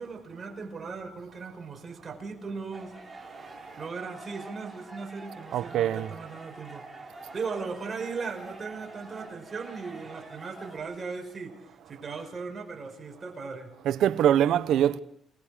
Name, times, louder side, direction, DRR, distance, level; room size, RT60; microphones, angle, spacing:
voice 1, 0.0-3.0 3.8-6.9 7.3-13.7, right 4 dB, 35° right, 5.1 m, -38 dB
sound 1, 2.7-10.8, right 2 dB, 15° right, 5.0 m, -46 dB
voice 2, 5.5-6.1 13.8-15.0, right 10 dB, 80° right, 0.8 m, -23 dB
29.0 x 20.0 x 5.0 m
cardioid pair, 90°, 0 cm